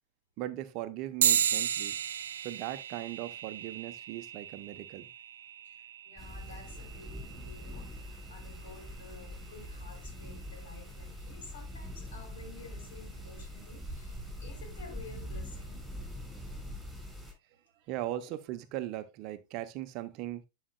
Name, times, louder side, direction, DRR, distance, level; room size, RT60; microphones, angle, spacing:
voice 1, 0.4-2.0 2.4-5.1 17.9-20.4, right 14 dB, 40° right, 0.8 m, -38 dB
sound 1, 1.2-11.0, right 9 dB, 60° right, 0.3 m, -35 dB
voice 2, 5.6-15.8, left 4 dB, 60° left, 3.6 m, -52 dB
sound 2, 6.2-17.3, equal, ahead, 5.1 m, -43 dB
11.0 x 6.6 x 2.2 m
figure-of-eight pair, 90°, 0 cm